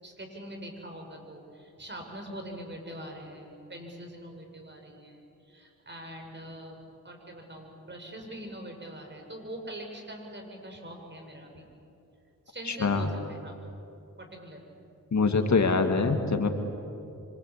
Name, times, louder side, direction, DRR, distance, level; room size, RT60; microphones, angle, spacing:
voice 1, 0.0-6.8 7.0-11.6 12.5-13.5 14.2-14.7, right 1 dB, 30° right, 2 dB, 6.7 m, -43 dB
voice 2, 12.7-13.1 15.1-16.5, left 4 dB, 55° left, 5 dB, 2.2 m, -24 dB
26.5 x 25.5 x 8.6 m, 2.7 s
cardioid pair, 60°, 33 cm